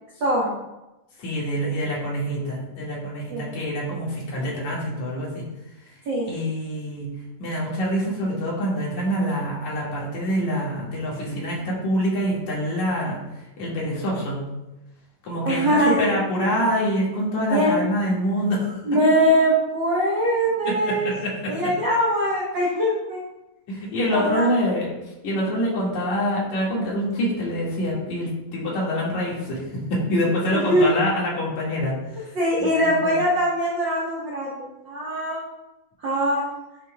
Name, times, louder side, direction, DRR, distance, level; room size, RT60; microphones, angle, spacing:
voice 1, 0.2-0.5 1.8-1.9 3.3-3.5 6.1-6.3 15.4-16.2 17.5-17.7 18.8-21.1 21.5-23.2 24.1-24.5 30.5-30.9 32.3-35.4 36.0-36.4, equal, 75° right, -4 dB, 1.0 m, -22 dB
voice 2, 1.2-5.5 6.3-7.1 7.4-13.2 13.6-14.4 15.2-18.8 20.7-21.6 23.7-24.9 25.2-32.3 32.6-33.1, equal, 60° left, -5 dB, 3.1 m, -25 dB
9.5 x 6.0 x 2.3 m, 0.99 s
omnidirectional pair, 3.8 m